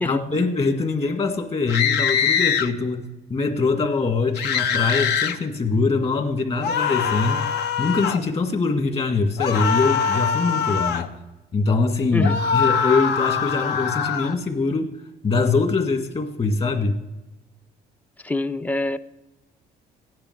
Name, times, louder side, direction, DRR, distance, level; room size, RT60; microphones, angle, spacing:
voice 1, 0.0-7.5 7.8-11.1 11.5-14.9 15.2-17.0, left 4 dB, 35° left, 5 dB, 1.8 m, -23 dB
sound 1, 1.7-2.7 4.4-5.4 6.6-8.2 9.4-11.1 12.2-14.3, left 7 dB, 80° left, 0.9 m, -23 dB
voice 2, 18.2-19.0, left 2 dB, 10° left, 14 dB, 0.5 m, -25 dB
15.0 x 10.5 x 4.7 m, 1.0 s
cardioid pair, 110°, 17 cm